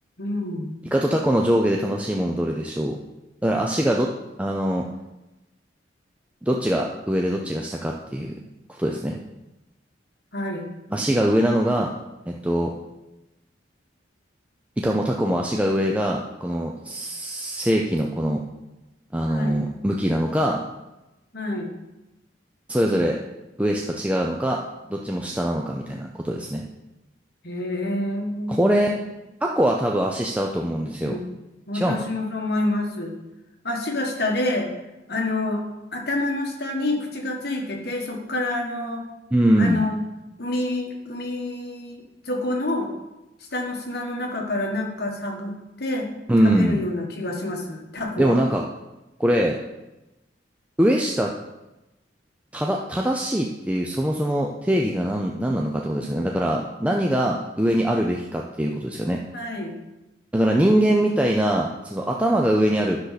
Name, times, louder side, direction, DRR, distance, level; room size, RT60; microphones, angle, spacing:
voice 1, 0.2-0.8 10.3-10.7 19.3-19.6 21.3-21.7 27.4-29.0 31.0-31.2 31.7-33.1 33.6-34.7 35.1-35.6 35.9-39.0 39.6-40.0 40.4-42.9 43.5-46.1 46.4-48.4 59.3-59.8 60.5-60.7, left 2 dB, 55° left, 1 dB, 1.4 m, -28 dB
voice 2, 0.9-3.0 3.4-4.1 4.4-4.8 6.4-8.4 8.7-9.2 10.9-11.9 12.3-12.7 14.8-18.4 19.1-20.6 22.7-23.2 23.6-24.6 24.9-26.6 28.5-28.9 29.4-31.2 31.7-32.0 39.3-39.8 46.3-46.8 48.2-48.6 49.2-49.6 50.8-51.3 52.5-59.2 60.3-63.0, right 1 dB, 5° right, 0 dB, 0.5 m, -22 dB
10.0 x 6.5 x 4.1 m, 1.0 s
head